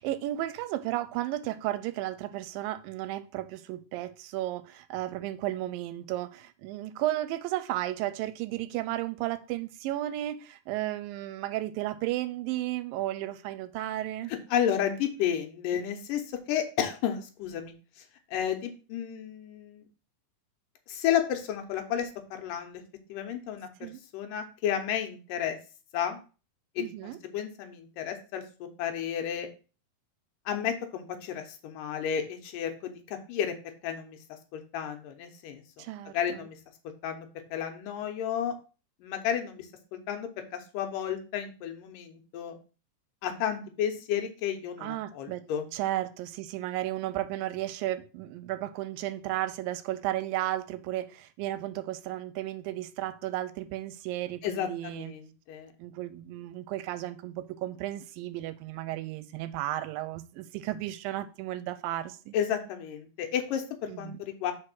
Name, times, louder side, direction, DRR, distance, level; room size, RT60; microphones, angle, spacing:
voice 1, 0.0-14.3 23.8-24.0 26.8-27.2 35.8-36.5 44.8-45.5 45.7-55.1 55.8-62.3 63.9-64.2, right 14 dB, 80° right, 2.2 m, -34 dB
voice 2, 14.3-16.2 16.5-17.7 18.3-19.8 20.9-22.8 23.1-23.7 24.1-25.6 25.9-26.2 26.8-29.5 30.5-33.5 33.8-34.2 34.5-35.8 36.1-36.6 37.0-38.5 39.0-39.7 40.1-42.6 43.2-45.7 54.4-55.7 62.3-64.5, left 9 dB, 75° left, 2.3 m, -32 dB
4.8 x 4.7 x 6.0 m
omnidirectional pair, 4.1 m